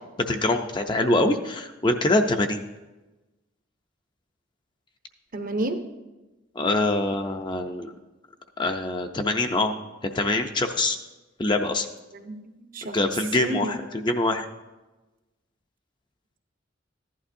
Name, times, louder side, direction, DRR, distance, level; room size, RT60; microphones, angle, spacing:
voice 1, 0.3-2.6 6.6-7.9 8.6-9.7 10.0-11.0 11.4-11.9 12.9-14.5, left 2 dB, 25° left, 6 dB, 0.5 m, -24 dB
voice 2, 5.3-5.8 12.1-13.0 13.4-13.8, right 2 dB, 45° right, 6 dB, 0.8 m, -31 dB
14.5 x 11.5 x 2.6 m, 1.1 s
head